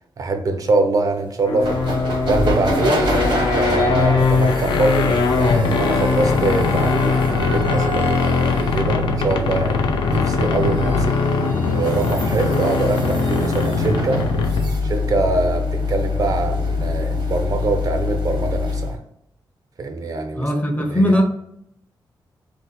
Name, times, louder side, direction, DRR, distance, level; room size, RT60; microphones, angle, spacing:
voice 1, 0.2-3.1 3.5-11.2 11.7-14.2 14.8-19.0 19.8-20.5 20.9-21.2, right 2 dB, 45° right, 6 dB, 0.4 m, -23 dB
sound 1, 1.4-14.8, left 4 dB, 90° left, 0.4 m, -21 dB
sound 2, 1.6-19.0, left 1 dB, 75° right, 0.8 m, -25 dB
voice 2, 20.4-21.2, equal, 20° left, 3 dB, 0.5 m, -18 dB
2.5 x 2.0 x 3.9 m, 0.75 s
wide cardioid pair, 120°, 8 cm